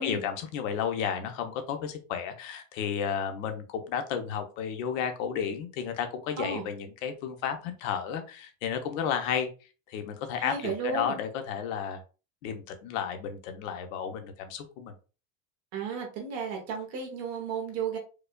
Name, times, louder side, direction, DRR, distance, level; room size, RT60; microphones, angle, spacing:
voice 1, 0.0-9.5 9.9-12.0 12.4-14.9, left 7 dB, 80° left, 7 dB, 0.9 m, -32 dB
voice 2, 10.4-11.2 15.7-18.0, right 5 dB, 40° right, 2 dB, 1.0 m, -33 dB
4.8 x 2.3 x 2.3 m, 0.34 s
cardioid pair, 180°, 39 cm